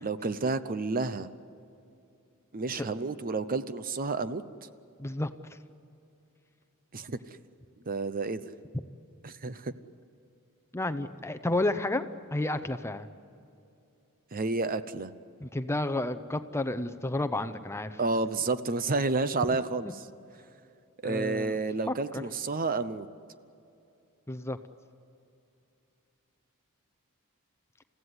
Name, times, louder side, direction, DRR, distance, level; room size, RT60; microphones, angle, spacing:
voice 1, 0.0-1.3 2.5-4.4 6.9-7.2 7.9-8.5 9.2-9.7 14.3-15.1 18.0-20.1 21.0-23.1, right 3 dB, 40° right, 13 dB, 0.7 m, -30 dB
voice 2, 5.0-5.3 10.7-13.1 15.4-18.0 19.5-19.6 21.0-21.6 21.9-22.2 24.3-24.6, left 2 dB, 10° left, 11 dB, 0.7 m, -31 dB
29.5 x 16.0 x 9.7 m, 2.7 s
head